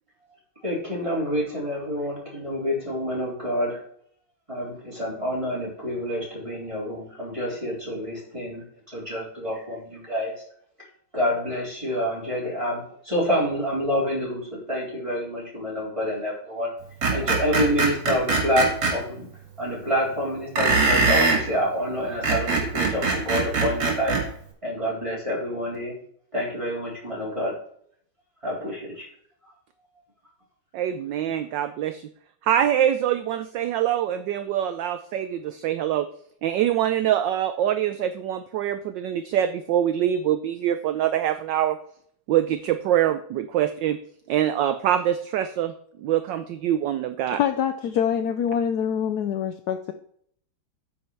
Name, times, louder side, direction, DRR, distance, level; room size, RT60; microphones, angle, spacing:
voice 1, 0.6-3.8 4.5-10.3 11.1-16.7 17.1-19.3 19.6-24.1 24.6-25.9 26.3-27.5 28.4-29.1 31.3-31.4, equal, 15° right, -5 dB, 3.9 m, -27 dB
Screech, 17.0-18.9 20.6-21.4 22.1-24.2, right 4 dB, 50° right, 3.3 m, -22 dB
voice 2, 30.7-32.1 32.4-36.1 36.4-41.8 42.3-44.0 44.3-45.7 46.0-47.4, right 11 dB, 75° right, 11 dB, 1.1 m, -24 dB
voice 3, 47.3-49.9, left 8 dB, 80° left, 8 dB, 0.9 m, -25 dB
9.4 x 5.7 x 4.7 m, 0.64 s
omnidirectional pair, 2.4 m